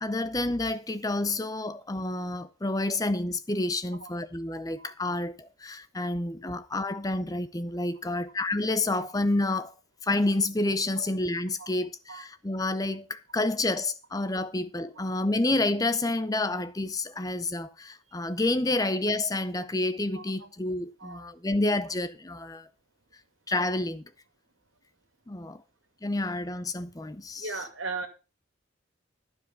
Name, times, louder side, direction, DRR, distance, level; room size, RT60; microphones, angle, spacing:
voice 1, 0.0-9.7 10.0-22.7 23.5-24.1 25.3-25.6 26.0-27.6, left 2 dB, 20° left, 0.6 m, -29 dB
voice 2, 27.4-28.1, right 3 dB, 80° right, 2.2 m, -36 dB
12.0 x 5.3 x 6.8 m
head